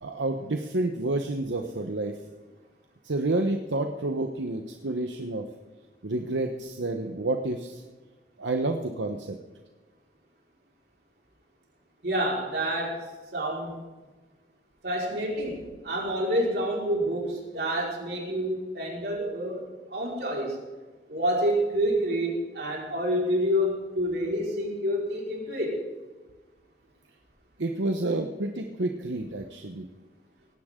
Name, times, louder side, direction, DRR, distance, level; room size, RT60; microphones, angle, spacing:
voice 1, 0.0-2.1 3.0-5.4 6.0-7.8 8.4-9.4 27.6-29.9, right 2 dB, 85° right, 4 dB, 1.0 m, -29 dB
voice 2, 12.0-13.0 13.3-13.8 14.8-19.6 19.9-20.6 21.1-25.8, equal, 60° right, -2 dB, 4.8 m, -28 dB
18.5 x 16.5 x 3.8 m, 1.3 s
head